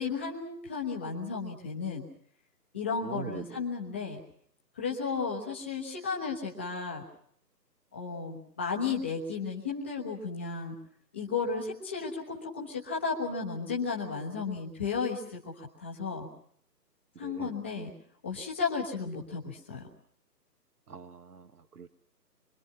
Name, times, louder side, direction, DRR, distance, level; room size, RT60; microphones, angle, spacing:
voice 1, 0.0-2.1 2.7-4.2 4.7-7.0 7.9-10.8 11.1-16.3 17.2-17.9 18.2-19.9, left 5 dB, 5° left, -3 dB, 1.1 m, -34 dB
voice 2, 3.0-3.6 17.2-17.5 20.9-21.9, right 6 dB, 65° right, 11 dB, 1.4 m, -42 dB
25.5 x 24.5 x 5.8 m, 0.64 s
hypercardioid pair, 170°, 50 cm